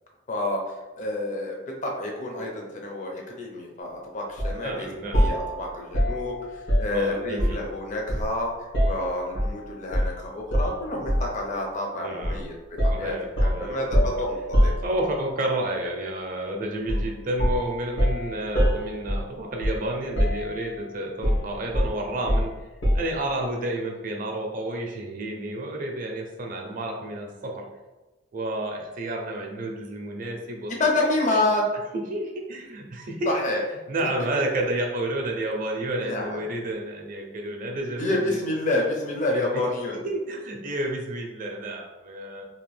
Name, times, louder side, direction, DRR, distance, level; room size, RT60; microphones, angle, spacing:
voice 1, 0.3-4.9 5.2-12.6 12.8-13.1 13.4-14.7 30.8-31.6 33.3-33.6 36.0-36.4 38.0-40.0, left 2 dB, 40° left, 0 dB, 0.6 m, -28 dB
sound 1, 4.4-4.6 5.1-7.7 8.1-9.6 9.9-10.2 10.5-11.4 12.2-12.4 12.8-15.3 16.9-17.1 17.4-19.9 20.2-20.8 21.2-23.2, equal, 75° left, 1.1 m, -25 dB
voice 2, 4.6-5.3 6.9-7.6 11.9-12.5 12.9-13.8 14.8-22.6 22.9-27.7 28.3-30.7 31.3-31.4 31.9-33.3 33.9-38.4 39.3-39.6 40.0-42.4, right 1 dB, 45° right, 1 dB, 0.5 m, -30 dB
2.9 x 2.3 x 3.2 m, 1.1 s
head